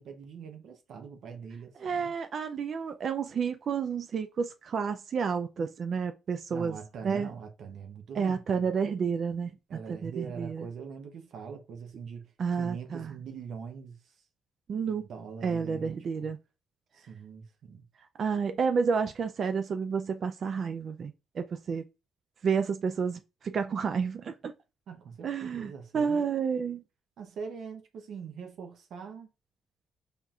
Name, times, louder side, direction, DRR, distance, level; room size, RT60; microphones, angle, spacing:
voice 1, 0.0-2.1 6.5-8.7 9.7-12.3 12.6-14.0 14.8-16.3 16.9-17.8 24.9-26.3 27.2-29.3, right 6 dB, 70° right, 0.7 m, -43 dB
voice 2, 1.8-6.8 7.0-7.3 8.1-10.7 12.4-13.1 14.7-15.0 15.4-16.4 18.2-21.8 22.4-24.5 25.2-26.8, right 6 dB, 55° right, 0.3 m, -30 dB
4.1 x 3.5 x 2.3 m
cardioid pair, 90°, 0 cm